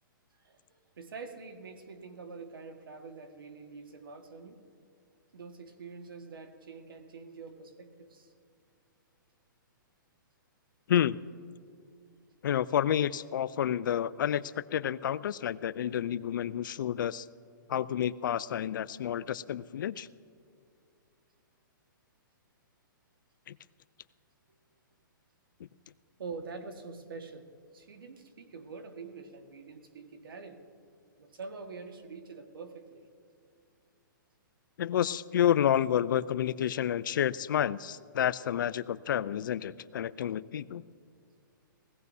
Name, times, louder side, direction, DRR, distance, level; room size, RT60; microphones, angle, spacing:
voice 1, 0.4-4.6 5.3-8.3 26.2-30.6 31.2-33.0, right 4 dB, 85° right, 6 dB, 1.6 m, -45 dB
voice 2, 10.9-11.2 12.4-17.3 17.7-20.1 23.5-23.6 34.8-40.8, left 10 dB, 65° left, 17 dB, 0.4 m, -29 dB
20.0 x 16.0 x 2.7 m, 2.3 s
hypercardioid pair, 160°, 11 cm